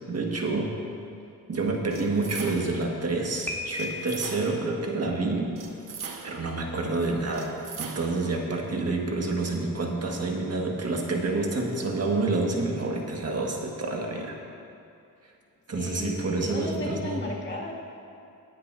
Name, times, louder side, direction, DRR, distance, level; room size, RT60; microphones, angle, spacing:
voice 1, 0.1-0.8 1.5-5.5 6.2-14.4 15.7-17.2, right 3 dB, 40° right, 1 dB, 1.6 m, -28 dB
sound 1, 1.9-2.9 3.7-4.7 5.6-6.5 7.3-8.3, right 6 dB, 60° right, 1.1 m, -40 dB
Piano, 3.5-4.4, left 2 dB, 5° left, 1.0 m, -35 dB
voice 2, 15.7-17.7, left 2 dB, 30° left, -4 dB, 2.2 m, -34 dB
19.5 x 9.7 x 2.6 m, 2.5 s
cardioid pair, 105°, 37 cm